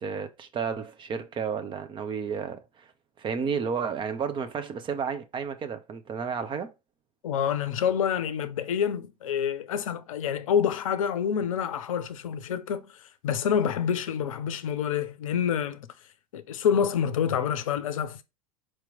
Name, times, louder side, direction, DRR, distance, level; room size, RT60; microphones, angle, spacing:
voice 1, 0.0-2.9 3.2-6.7, right 6 dB, 25° right, 0.6 m, -32 dB
voice 2, 7.2-15.9 16.3-18.2, left 8 dB, 65° left, 0.6 m, -27 dB
4.6 x 2.9 x 3.6 m
figure-of-eight pair, 80°, 19 cm